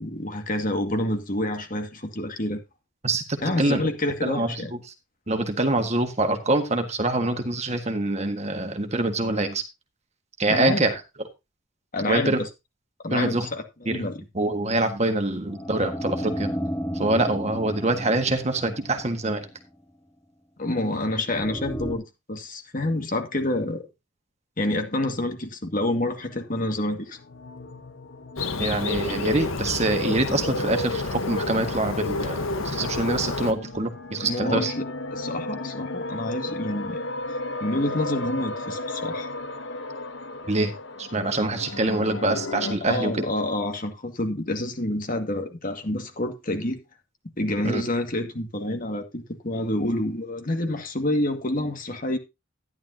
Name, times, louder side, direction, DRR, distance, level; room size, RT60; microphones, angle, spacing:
voice 1, 0.0-2.6 3.4-4.7 10.5-10.9 11.9-12.5 13.0-14.2 20.6-22.0 22.3-23.9 24.6-27.2 34.2-34.8 35.1-37.0 37.6-39.3 42.8-46.8 47.4-52.2, left 1 dB, 45° left, 2.0 m, -28 dB
voice 2, 3.0-3.8 4.2-4.7 5.3-9.6 10.4-11.0 12.1-12.4 13.1-13.5 13.8-14.0 14.3-16.5 16.9-19.5 28.6-34.7 40.5-40.7 41.0-43.2 47.6-47.8, right 2 dB, 35° right, 1.6 m, -25 dB
sound 1, 15.5-19.5 21.3-21.9, equal, 15° left, 1.8 m, -33 dB
sound 2, 26.1-42.8, left 2 dB, 65° left, 1.0 m, -36 dB
Bird, 28.4-33.5, left 3 dB, 90° left, 1.3 m, -29 dB
12.5 x 10.5 x 2.8 m
head